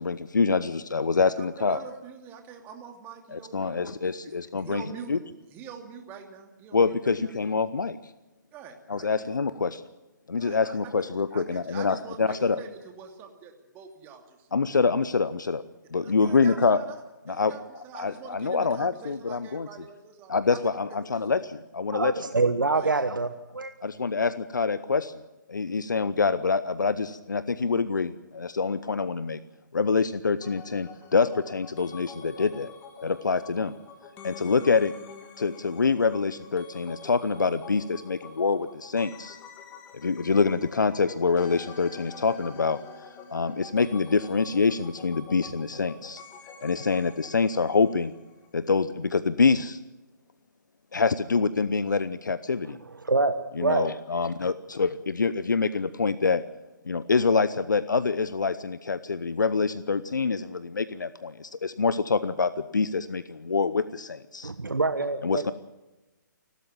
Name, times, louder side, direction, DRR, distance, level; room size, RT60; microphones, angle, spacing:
voice 1, 0.0-1.8 3.3-4.8 5.1-5.2 6.7-8.0 8.9-9.8 10.3-12.6 14.5-15.6 15.9-16.8 17.3-17.5 17.9-19.7 20.3-22.1 23.8-25.1 25.5-29.4 29.7-32.7 33.0-33.7 34.2-34.9 35.4-39.4 39.9-42.8 43.3-46.2 46.6-48.1 48.5-49.8 50.9-52.8 53.6-56.4 56.8-64.5 65.2-65.5, left 4 dB, 70° left, 14 dB, 0.9 m, -26 dB
voice 2, 1.4-4.3 4.6-5.1 5.5-7.3 8.5-9.4 10.4-10.9 11.3-14.5 16.0-17.0 17.3-21.0 21.3-21.4 22.7-22.9, right 7 dB, 20° right, 4 dB, 2.7 m, -45 dB
voice 3, 21.9-23.7 53.0-53.3 53.6-53.9 64.4-65.4, right 3 dB, 80° right, 9 dB, 1.4 m, -25 dB
sound 1, 30.4-48.5 48.7-48.8, left 5 dB, 20° left, 2.3 m, -47 dB
29.5 x 12.5 x 7.5 m, 1.1 s
figure-of-eight pair, 135°, 11 cm